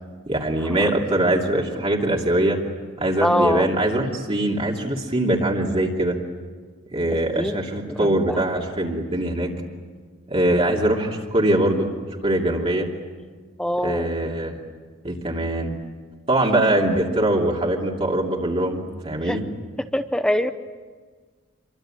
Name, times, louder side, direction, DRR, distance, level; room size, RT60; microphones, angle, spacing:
voice 1, 0.3-2.6 3.0-6.2 6.9-9.5 10.3-11.9 12.2-12.9 13.8-14.5 15.0-15.8 16.3-19.5, right 1 dB, 30° right, -2 dB, 2.8 m, -22 dB
voice 2, 3.2-3.7 7.4-7.6 8.0-8.4 13.6-14.1 19.2-19.4 19.9-20.5, left 1 dB, 5° left, 9 dB, 0.8 m, -23 dB
27.0 x 24.0 x 9.0 m, 1.5 s
head